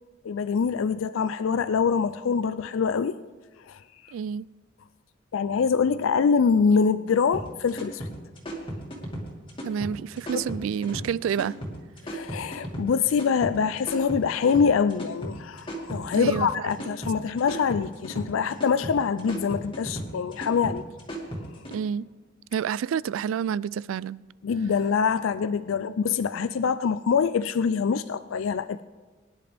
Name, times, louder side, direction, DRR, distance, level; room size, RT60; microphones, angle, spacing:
voice 1, 0.2-3.2 3.6-3.8 5.3-8.1 10.3-10.4 12.0-20.8 24.4-28.8, left 6 dB, 80° left, 13 dB, 0.4 m, -24 dB
voice 2, 4.1-4.5 9.6-11.6 16.2-16.7 21.7-22.0 22.5-24.2, right 7 dB, 85° right, 22 dB, 0.3 m, -29 dB
sound 1, 7.3-21.8, right 1 dB, 25° left, 2.3 m, -36 dB
22.5 x 10.5 x 3.5 m, 1.3 s
head